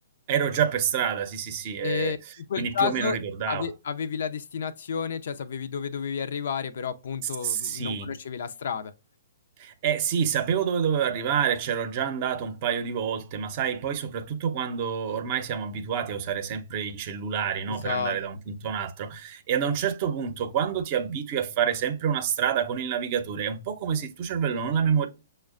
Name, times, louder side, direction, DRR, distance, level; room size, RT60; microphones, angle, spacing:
voice 1, 0.3-2.1 2.6-3.7 7.4-8.1 9.6-25.1, right 8 dB, 40° right, 0.6 m, -28 dB
voice 2, 1.8-2.2 2.5-3.2 3.5-8.9 17.7-18.2, left 7 dB, 65° left, 0.4 m, -31 dB
6.1 x 2.1 x 2.3 m
hypercardioid pair, 140°, 0 cm